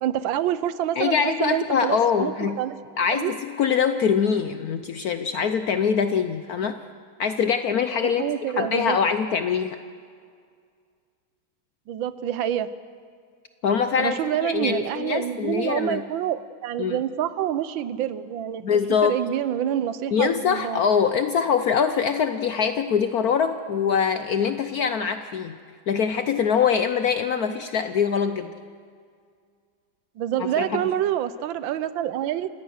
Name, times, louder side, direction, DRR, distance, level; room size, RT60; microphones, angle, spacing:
voice 1, 0.0-2.8 3.1-3.4 8.0-9.0 11.9-12.7 14.0-18.6 19.0-20.8 27.5-27.6 30.2-32.5, right 11 dB, 85° right, 14 dB, 1.5 m, -27 dB
voice 2, 1.0-2.6 3.0-6.7 7.2-8.2 8.6-9.8 13.6-14.2 14.4-16.0 16.8-17.0 18.6-19.2 20.1-25.6 25.9-28.5 30.4-30.8, left 7 dB, 60° left, 9 dB, 1.1 m, -23 dB
28.5 x 17.5 x 6.5 m, 2.1 s
omnidirectional pair, 2.1 m